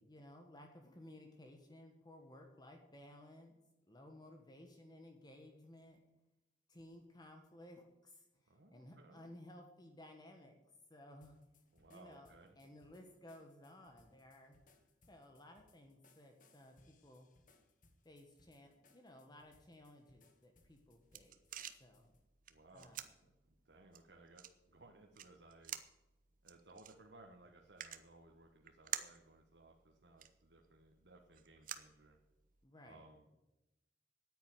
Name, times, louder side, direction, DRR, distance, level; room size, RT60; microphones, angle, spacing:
voice 1, 0.0-3.5 3.9-6.0 6.7-10.6 10.9-11.4 11.9-14.6 15.1-17.3 18.0-21.3 21.8-22.1 22.7-23.0 32.6-33.0, left 1 dB, 25° left, 3 dB, 1.4 m, -58 dB
voice 2, 8.5-9.3 11.7-12.5 22.5-23.1 23.5-25.8 26.4-32.2 32.8-33.3, right 2 dB, 80° right, 2 dB, 1.4 m, -61 dB
sound 1, 11.2-22.3, left 3 dB, 50° left, 1.5 m, -72 dB
sound 2, 20.6-32.6, right 11 dB, 50° right, 0.8 m, -51 dB
9.6 x 9.3 x 9.4 m, 0.97 s
head